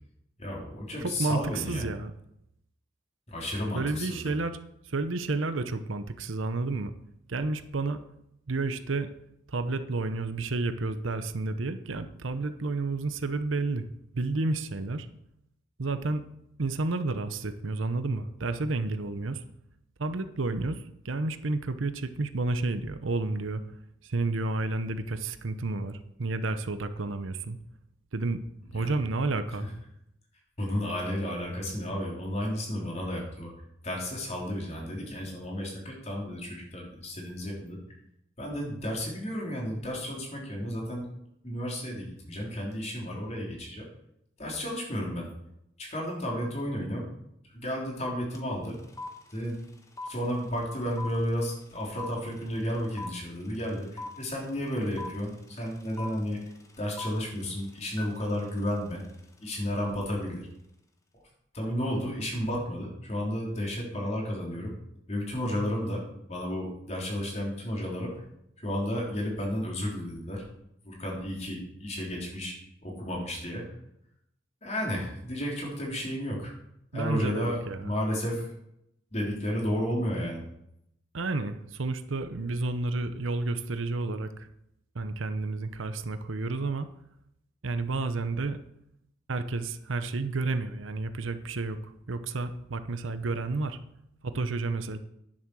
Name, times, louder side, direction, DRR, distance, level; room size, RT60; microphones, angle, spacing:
voice 1, 0.4-1.9 3.3-4.3 28.7-29.0 30.6-33.5 33.8-37.8 38.4-41.1 41.4-43.9 44.4-45.3 45.8-47.1 47.5-48.8 49.3-49.6 50.0-56.4 56.8-59.0 59.4-60.5 61.5-64.7 65.1-66.0 66.3-68.1 68.6-70.4 70.8-72.6 72.8-73.6 74.6-76.5 76.9-78.5 79.1-80.4, equal, 35° left, -2 dB, 3.4 m, -32 dB
voice 2, 1.0-2.1 3.7-4.6 4.8-6.9 7.3-8.0 8.5-9.1 9.5-13.9 14.1-15.1 15.8-16.2 16.6-19.4 20.0-23.6 24.0-27.6 28.1-28.4 28.7-29.7 76.9-77.9 81.1-84.5 84.9-86.9 87.6-88.6 89.3-93.8 94.2-95.0, right 3 dB, 80° right, 11 dB, 0.8 m, -31 dB
sound 1, 48.3-48.4 48.6-59.8, left 2 dB, 15° left, 1.1 m, -43 dB
10.5 x 7.4 x 6.2 m, 0.79 s
head